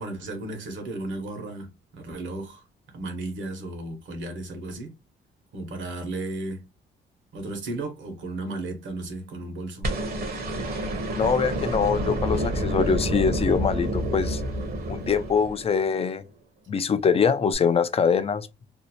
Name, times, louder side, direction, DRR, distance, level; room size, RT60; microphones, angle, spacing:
voice 1, 0.0-1.7 1.9-2.6 2.9-4.9 5.5-6.6 7.3-9.9, right 2 dB, 70° right, 1.1 m, -34 dB
sound 1, 9.8-16.0 17.5-17.6, right 1 dB, 50° right, 0.8 m, -28 dB
voice 2, 11.1-14.4 14.9-16.2 16.7-18.5, left 6 dB, 30° left, 0.4 m, -23 dB
2.7 x 2.0 x 2.8 m
cardioid pair, 90°, 20 cm